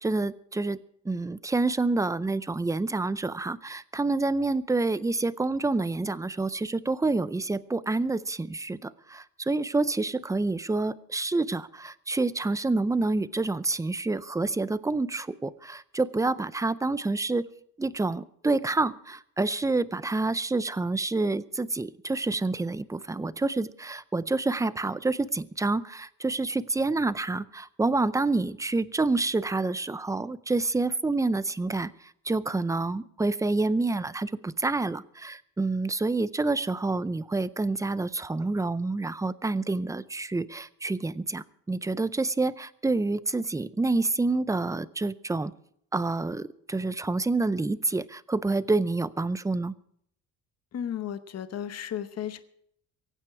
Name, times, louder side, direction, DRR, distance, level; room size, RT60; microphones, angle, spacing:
voice 1, 0.0-17.5 17.8-31.9 32.3-45.5 45.9-49.7, right 3 dB, 10° right, 16 dB, 0.4 m, -28 dB
voice 2, 50.7-52.4, left 9 dB, 45° left, 11 dB, 1.0 m, -34 dB
23.5 x 9.2 x 4.7 m, 0.70 s
cardioid pair, 135°, 36 cm